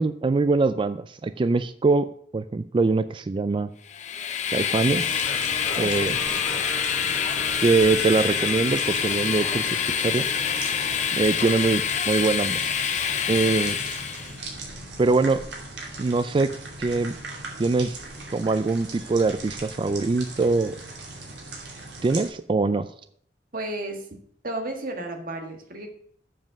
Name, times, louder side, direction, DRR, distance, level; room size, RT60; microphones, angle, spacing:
voice 1, 0.0-3.7 4.5-5.3 5.8-6.2 7.6-10.3 11.1-12.7 13.3-13.8 15.0-15.4 16.0-16.5 16.8-17.2 17.6-18.0 18.3-20.8 22.0-22.9, right 3 dB, 30° right, 13 dB, 0.3 m, -23 dB
Train, 3.9-14.3, left 8 dB, 45° left, 0.7 m, -26 dB
sound 1, 4.8-22.3, right 2 dB, 90° right, 2.6 m, -39 dB
Singing, 5.1-11.1, right 1 dB, 5° right, 1.0 m, -40 dB
voice 2, 23.5-24.1 24.4-25.9, right 1 dB, 55° right, 4 dB, 1.7 m, -33 dB
7.5 x 7.3 x 6.1 m, 0.64 s
head